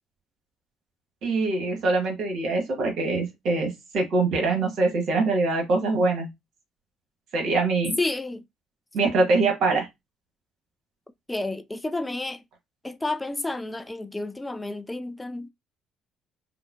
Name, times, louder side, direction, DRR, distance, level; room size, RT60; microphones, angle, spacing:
voice 1, 1.2-6.3 7.3-8.0 8.9-9.9, right 3 dB, 60° right, 1.4 m, -23 dB
voice 2, 8.0-8.4 11.3-12.4 12.8-15.5, left 2 dB, 15° left, 0.4 m, -30 dB
5.4 x 2.1 x 2.6 m
figure-of-eight pair, 50°, 0 cm